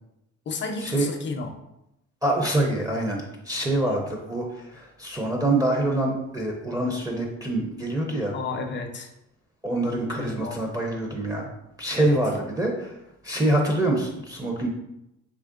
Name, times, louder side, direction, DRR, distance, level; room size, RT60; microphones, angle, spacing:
voice 1, 0.5-1.5 8.3-9.1 10.2-10.6 12.0-12.2, left 4 dB, 40° left, 4 dB, 0.5 m, -32 dB
voice 2, 2.2-8.4 9.6-11.5 11.8-12.9 13.2-14.7, right 1 dB, 10° right, -1 dB, 0.5 m, -25 dB
3.6 x 2.9 x 2.5 m, 0.86 s
cardioid pair, 90°, 30 cm